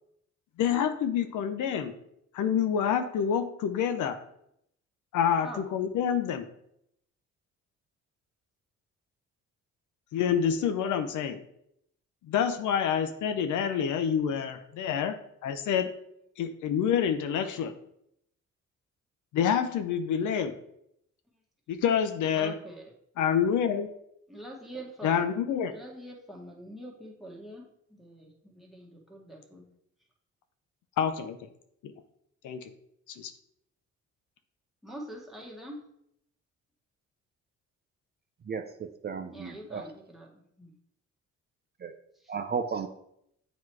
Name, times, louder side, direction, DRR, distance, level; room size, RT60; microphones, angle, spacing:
voice 1, 0.6-1.9 2.3-4.2 5.1-6.5 10.1-11.4 12.3-15.2 15.4-15.9 16.4-17.7 19.3-20.5 21.7-22.5 23.2-23.9 25.0-25.7 31.0-31.4 32.4-32.7 33.1-33.3, left 8 dB, 80° left, 9 dB, 0.6 m, -27 dB
voice 2, 22.3-22.9 24.3-25.2 25.7-29.6 34.8-35.9 39.3-40.7 42.2-42.3, right 1 dB, ahead, -2 dB, 1.5 m, -45 dB
voice 3, 38.5-39.8 41.8-41.9 42.3-42.9, right 6 dB, 35° right, 6 dB, 0.5 m, -34 dB
7.5 x 3.1 x 4.6 m, 0.75 s
cardioid pair, 90°, 30 cm